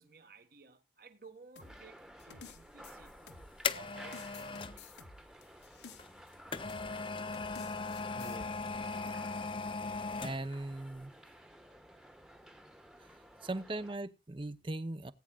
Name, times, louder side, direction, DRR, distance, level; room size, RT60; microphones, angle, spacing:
voice 1, 0.0-3.2 3.7-4.9, right 4 dB, 55° right, 1.6 m, -56 dB
sound 1, 1.6-3.7 4.1-6.3 6.7-6.9 7.3-8.4, left 5 dB, 80° left, 1.3 m, -53 dB
sound 2, 1.6-14.0, equal, 5° right, 1.1 m, -55 dB
sound 3, 3.0-4.8 6.0-10.6 11.0-11.1, left 4 dB, 30° left, 0.6 m, -38 dB
voice 2, 8.2-8.5 10.2-11.1 13.4-15.1, right 2 dB, 30° right, 0.7 m, -39 dB
19.0 x 8.9 x 2.3 m
head